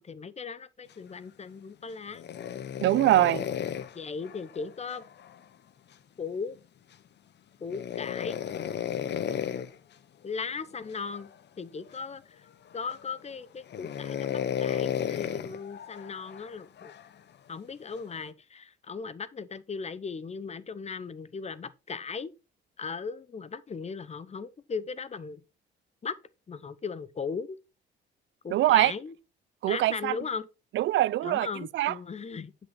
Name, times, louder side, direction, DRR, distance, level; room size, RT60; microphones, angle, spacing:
voice 1, 0.0-2.2 3.9-5.0 6.2-6.6 7.6-8.4 10.2-11.3 11.6-12.4 12.7-16.9 17.5-22.3 22.8-25.4 26.0-26.2 26.5-27.6 28.4-29.2 29.7-30.5 31.2-32.5, left 5 dB, 35° left, 0.9 m, -37 dB
sound 1, 2.1-5.4 7.7-9.7 10.9-11.3 11.9-12.0 12.7-13.2 13.7-17.1 17.9-18.3, left 9 dB, 60° left, 1.0 m, -34 dB
voice 2, 2.8-3.5 28.5-28.9 29.6-30.1 30.8-31.5 31.7-31.9, right 15 dB, 70° right, 0.4 m, -23 dB
9.7 x 6.1 x 4.3 m
cardioid pair, 90°, 20 cm